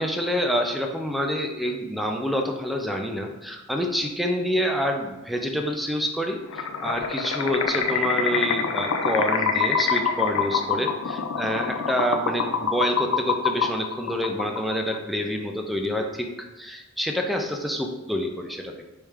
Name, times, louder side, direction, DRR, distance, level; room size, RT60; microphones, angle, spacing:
voice 1, 0.0-16.3 16.6-18.7, equal, ahead, 2 dB, 0.4 m, -27 dB
sound 1, 6.5-15.0, left 5 dB, 85° left, 0.4 m, -26 dB
3.4 x 3.2 x 4.9 m, 1.0 s
head